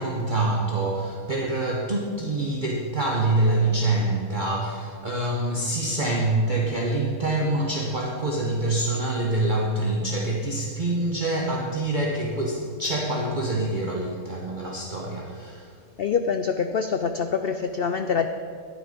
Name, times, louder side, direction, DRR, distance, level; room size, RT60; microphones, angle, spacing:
voice 1, 0.0-15.7, right 2 dB, 35° right, -2 dB, 1.2 m, -26 dB
voice 2, 16.0-18.3, left 6 dB, 65° left, 7 dB, 0.5 m, -25 dB
11.5 x 9.9 x 5.3 m, 2.1 s
omnidirectional pair, 1.5 m